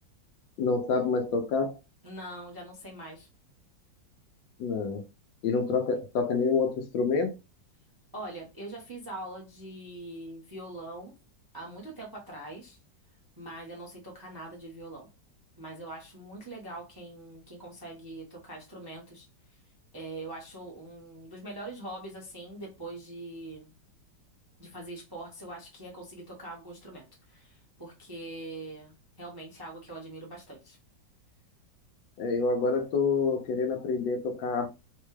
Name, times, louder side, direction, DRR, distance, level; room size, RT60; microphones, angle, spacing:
voice 1, 0.6-1.7 4.6-5.0 5.4-7.3 32.2-34.7, left 4 dB, 85° left, 1.4 m, -27 dB
voice 2, 2.0-3.3 8.1-11.1 11.5-12.8 13.4-15.1 15.6-19.3 19.9-23.7 24.6-28.9 29.2-30.8, right 2 dB, 25° right, 0.5 m, -43 dB
4.1 x 2.2 x 3.1 m
omnidirectional pair, 2.0 m